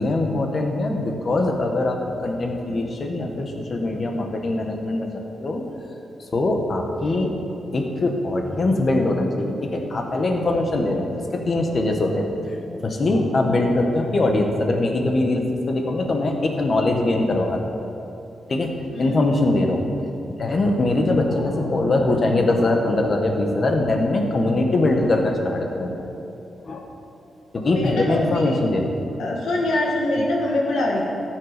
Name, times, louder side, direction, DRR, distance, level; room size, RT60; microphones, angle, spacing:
voice 1, 0.0-5.6 6.3-7.3 7.7-11.1 11.3-12.2 12.8-17.6 18.5-18.7 19.0-19.9 20.4-26.0 26.6-26.8 27.6-28.8, left 2 dB, 45° left, 2 dB, 1.6 m, -22 dB
voice 2, 27.7-28.6 29.2-31.0, left 1 dB, 90° left, -1 dB, 2.0 m, -24 dB
13.5 x 7.8 x 5.2 m, 2.8 s
cardioid pair, 90°, 0 cm